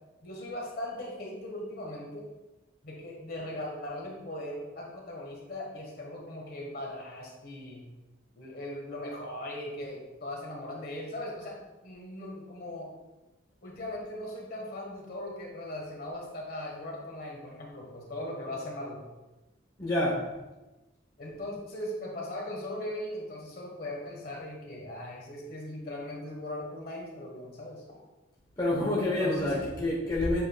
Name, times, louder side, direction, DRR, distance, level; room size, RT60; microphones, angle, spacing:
voice 1, 0.2-2.2 2.8-7.8 8.3-11.6 11.8-12.9 13.6-19.0 21.2-27.8 29.0-29.5, left 1 dB, 50° left, -2 dB, 1.5 m, -39 dB
voice 2, 19.8-20.3 28.6-30.5, left 1 dB, 20° left, -6 dB, 1.1 m, -28 dB
7.7 x 5.6 x 2.3 m, 1.1 s
head